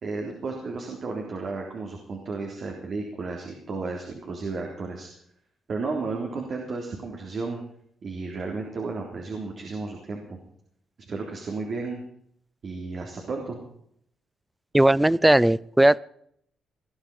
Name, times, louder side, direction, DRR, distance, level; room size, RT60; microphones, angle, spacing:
voice 1, 0.0-5.1 5.7-7.6 8.0-10.4 11.1-12.0 12.6-13.6, right 3 dB, 55° right, 1 dB, 3.7 m, -33 dB
voice 2, 14.7-16.0, right 1 dB, 10° right, 22 dB, 0.5 m, -18 dB
20.0 x 12.0 x 5.5 m, 0.68 s
cardioid pair, 90°, 0 cm